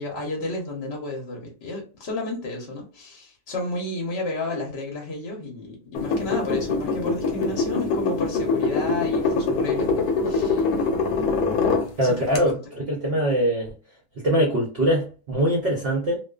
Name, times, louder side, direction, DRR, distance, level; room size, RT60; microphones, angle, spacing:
voice 1, 0.0-10.6 12.0-12.6, left 2 dB, 50° left, 0.8 m, -32 dB
sound 1, 5.9-11.9 12.3-12.4, left 4 dB, 75° left, 1.0 m, -24 dB
voice 2, 12.0-13.7 14.2-16.2, right 1 dB, 55° right, 0.7 m, -23 dB
2.4 x 2.4 x 2.3 m
omnidirectional pair, 1.7 m